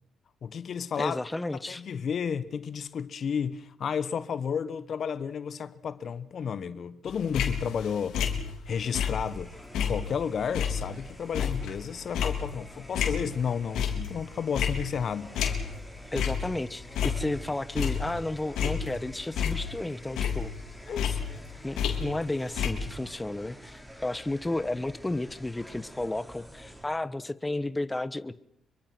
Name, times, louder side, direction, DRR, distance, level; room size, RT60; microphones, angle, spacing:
voice 1, 0.4-1.2 1.5-8.2 8.7-15.4 20.9-21.2, left 7 dB, 55° left, 1.1 m, -32 dB
voice 2, 1.0-1.8 16.1-20.5 21.6-28.4, left 2 dB, 15° left, 1.2 m, -32 dB
sound 1, 7.1-9.4 9.7-13.4 13.7-14.2 14.5-15.9 16.1-16.5 16.8-18.2 18.6-19.9 20.2-22.3 22.6-22.7, left 7 dB, 80° left, 3.9 m, -30 dB
sound 2, 8.7-26.9, equal, 5° right, 4.5 m, -48 dB
26.0 x 23.5 x 6.1 m
cardioid pair, 90°, 0 cm